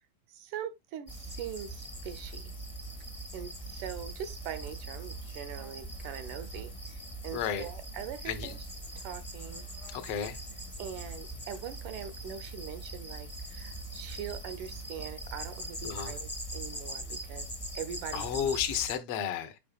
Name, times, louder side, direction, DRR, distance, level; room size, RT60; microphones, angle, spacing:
voice 1, 0.3-2.5 3.3-8.6 9.0-9.7 10.8-18.5, right 9 dB, 75° right, 2.0 m, -42 dB
sound 1, 1.1-18.9, right 1 dB, 35° left, 0.5 m, -41 dB
voice 2, 7.3-7.7 8.2-8.6 9.9-10.4 15.8-16.2 18.1-19.6, left 9 dB, 70° left, 1.4 m, -33 dB
8.5 x 5.6 x 2.4 m
omnidirectional pair, 4.1 m